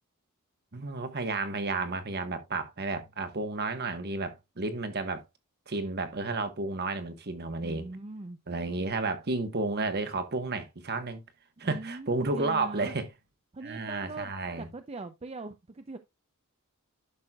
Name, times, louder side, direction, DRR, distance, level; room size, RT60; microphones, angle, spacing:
voice 1, 0.7-5.2 5.7-7.9 8.5-11.2 11.6-13.1 13.6-14.7, right 3 dB, 50° right, 1.3 m, -32 dB
voice 2, 7.6-8.4 11.6-12.9 13.5-14.3 14.6-16.0, right 3 dB, 30° right, 0.6 m, -41 dB
11.5 x 6.3 x 2.3 m
head